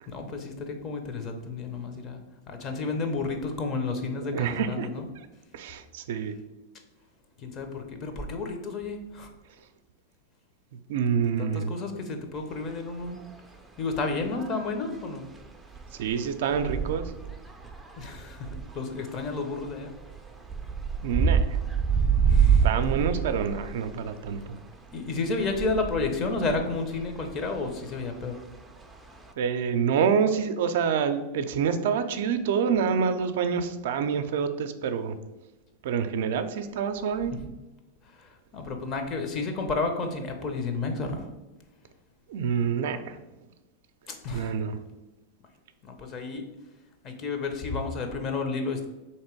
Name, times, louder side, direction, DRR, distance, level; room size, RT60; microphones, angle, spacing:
voice 1, 0.1-2.2 2.5-5.1 7.4-9.3 11.4-13.2 13.8-15.3 18.0-19.9 22.2-22.7 24.9-28.4 37.3-37.4 38.2-38.3 38.5-41.3 44.1-44.5 45.8-46.5 47.0-48.9, left 3 dB, 35° left, 5 dB, 0.7 m, -31 dB
voice 2, 4.2-4.9 5.2-5.3 5.5-6.4 10.7-11.8 15.9-17.1 21.0-21.6 22.6-24.6 29.4-35.2 35.8-37.3 42.3-43.2 44.3-44.8, right 6 dB, 70° right, 9 dB, 0.4 m, -27 dB
sound 1, 12.6-12.7 13.0-13.3 14.3-14.9 15.4-24.6 24.8-29.3, right 6 dB, 5° right, 0.4 m, -28 dB
3.3 x 2.9 x 4.5 m, 1.0 s
hypercardioid pair, 125°, 0 cm